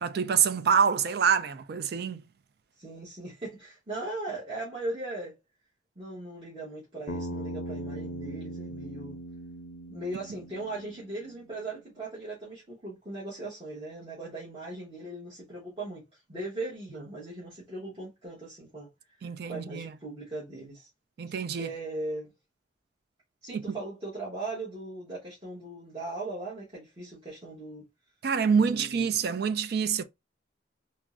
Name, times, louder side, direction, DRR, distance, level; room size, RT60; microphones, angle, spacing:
voice 1, 0.0-2.2 19.2-19.9 21.2-21.7 23.5-23.8 28.2-30.0, right 6 dB, 55° right, 0.3 m, -26 dB
voice 2, 2.8-5.4 6.0-9.2 9.9-20.9 21.3-22.3 23.4-27.8 28.6-29.2, right 2 dB, 30° right, 1.0 m, -39 dB
Bass guitar, 7.1-11.4, equal, 75° left, 0.5 m, -39 dB
3.4 x 2.0 x 2.4 m
head